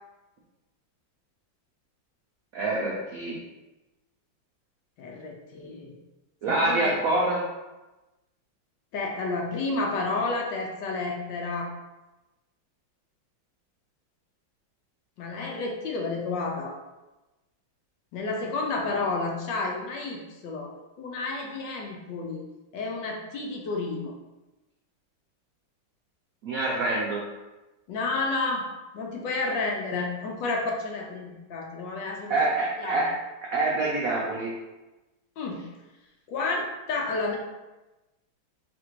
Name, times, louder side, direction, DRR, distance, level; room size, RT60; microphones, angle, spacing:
voice 1, 2.5-3.4 6.4-7.5 18.9-19.0 26.4-27.2 32.3-33.2 33.5-34.6, right 2 dB, 75° right, -4 dB, 0.8 m, -26 dB
voice 2, 5.0-5.9 6.5-6.9 8.9-11.7 15.2-16.8 18.1-20.7 21.0-22.4 22.7-24.1 27.9-28.7 28.9-32.3 32.8-33.1 35.4-35.6 36.3-37.4, left 3 dB, 70° left, 0 dB, 1.2 m, -30 dB
3.3 x 2.5 x 4.4 m, 1.1 s
omnidirectional pair, 2.2 m